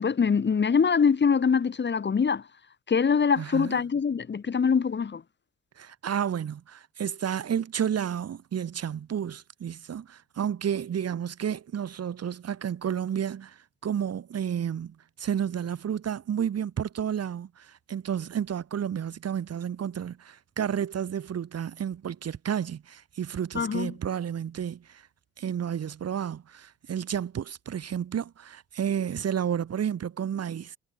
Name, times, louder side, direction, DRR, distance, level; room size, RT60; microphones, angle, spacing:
voice 1, 0.0-2.4 2.9-5.2 23.5-23.9, left 6 dB, 35° left, 2.2 m, -23 dB
voice 2, 3.4-3.8 5.8-25.1 25.4-30.8, right 8 dB, 55° right, 3.1 m, -31 dB
cardioid pair, 90°, 30 cm